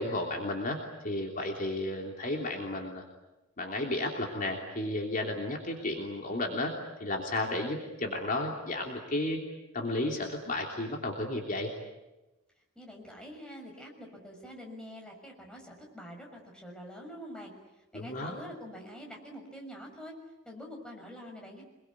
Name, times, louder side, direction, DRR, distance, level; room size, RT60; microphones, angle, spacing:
voice 1, 0.0-3.0 3.6-9.4 9.7-11.7 17.9-18.4, left 2 dB, 40° left, 1 dB, 3.2 m, -33 dB
voice 2, 12.7-17.5 17.9-20.2 20.4-21.6, equal, 5° left, 0 dB, 6.5 m, -45 dB
27.0 x 22.5 x 9.7 m, 1.0 s
head